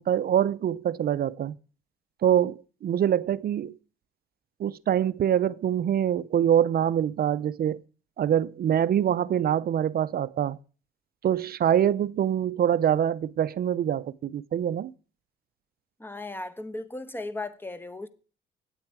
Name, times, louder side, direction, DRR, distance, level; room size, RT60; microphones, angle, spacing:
voice 1, 0.0-1.5 2.2-3.8 4.6-7.8 8.2-10.6 11.2-14.9, right 10 dB, 50° right, 0.5 m, -24 dB
voice 2, 16.0-18.1, left 2 dB, 10° left, 0.9 m, -36 dB
8.8 x 8.7 x 4.6 m
cardioid pair, 90°, 20 cm